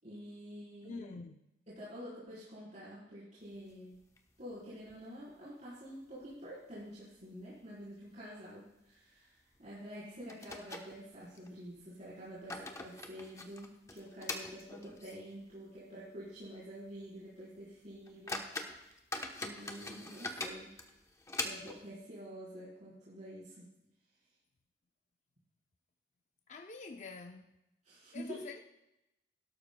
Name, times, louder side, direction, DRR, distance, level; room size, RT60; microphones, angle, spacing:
voice 1, 0.0-1.1 1.7-4.0 4.4-18.9 19.4-20.8 21.4-23.7 27.8-28.5, equal, 45° right, 4.1 m, -48 dB
voice 2, 0.8-1.4 26.5-27.5 28.1-28.6, left 4 dB, 40° left, 0.5 m, -46 dB
sound 1, 3.6-4.5 4.9-5.0 5.3-5.4 6.0-6.5 6.8-6.9 7.5-7.7 8.0-8.2 9.6-9.7 10.3-11.5 12.1-15.3 15.7-15.8 16.3-16.5 16.9-17.0 17.6-17.7 18.1-21.9, left 2 dB, 20° left, 0.9 m, -43 dB
17.5 x 12.5 x 2.3 m
head